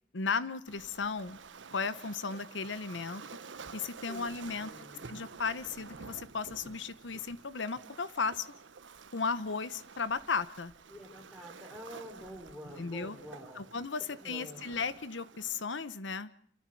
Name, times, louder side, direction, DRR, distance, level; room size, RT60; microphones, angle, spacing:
voice 1, 0.1-1.4 1.7-3.2 3.7-4.7 5.1-8.5 9.1-10.7 12.8-13.2 13.5-16.3, left 5 dB, 80° left, 15 dB, 0.9 m, -35 dB
Waves surf, 0.7-15.6, right 5 dB, 85° right, 1.0 m, -50 dB
voice 2, 4.6-5.1 10.9-13.6 14.2-14.6, equal, ahead, 3 dB, 4.8 m, -47 dB
28.0 x 14.0 x 7.8 m, 0.65 s
head